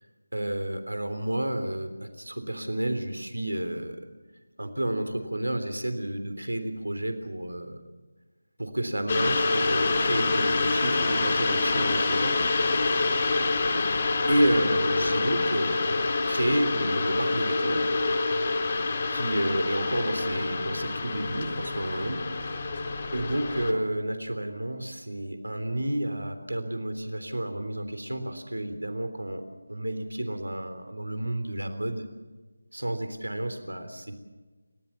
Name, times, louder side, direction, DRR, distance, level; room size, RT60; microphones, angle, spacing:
voice 1, 0.3-4.1 4.6-7.8 8.6-12.4 13.6-13.9 14.3-17.9 19.1-22.2 23.1-29.4 29.7-32.1 32.7-34.1, right 1 dB, 85° right, 8 dB, 3.4 m, -30 dB
sound 1, 9.1-23.7, left 3 dB, 35° left, 4.7 m, -26 dB
29.5 x 15.5 x 7.2 m, 1.3 s
figure-of-eight pair, 165°, 0 cm